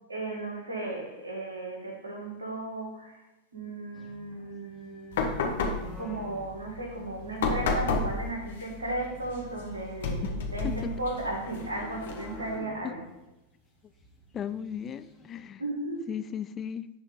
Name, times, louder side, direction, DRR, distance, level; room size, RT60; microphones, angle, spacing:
voice 1, 0.1-3.2 3.5-5.3 6.0-13.0 15.6-16.1, right 2 dB, 75° right, 1 dB, 2.2 m, -35 dB
sound 1, 3.9-8.7 9.0-15.4, left 1 dB, 10° left, 1.8 m, -50 dB
sound 2, 5.1-12.6, left 4 dB, 60° left, 1.4 m, -33 dB
voice 2, 10.6-10.9 12.8-12.9 14.3-15.6 16.1-16.9, left 8 dB, 25° left, 13 dB, 0.4 m, -36 dB
10.5 x 4.5 x 5.3 m, 0.96 s
figure-of-eight pair, 90°, 0 cm